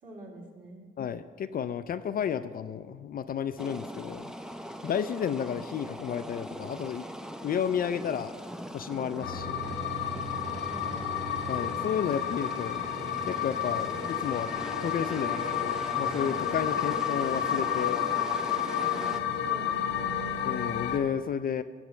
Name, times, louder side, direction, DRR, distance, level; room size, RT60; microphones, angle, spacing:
voice 1, 0.0-0.9 10.5-11.3 19.4-20.5, right 1 dB, 45° right, -2 dB, 2.6 m, -47 dB
voice 2, 1.0-4.2 4.8-7.0 7.4-8.3 8.7-9.6 11.5-12.8 13.2-14.5 14.8-18.0 20.4-21.6, left 8 dB, 50° left, 11 dB, 0.4 m, -32 dB
sound 1, 3.6-19.2, equal, 5° right, 0.5 m, -41 dB
sound 2, 9.2-21.0, left 8 dB, 80° left, 0.9 m, -31 dB
15.0 x 7.7 x 3.2 m, 1.5 s
cardioid pair, 90°, 20 cm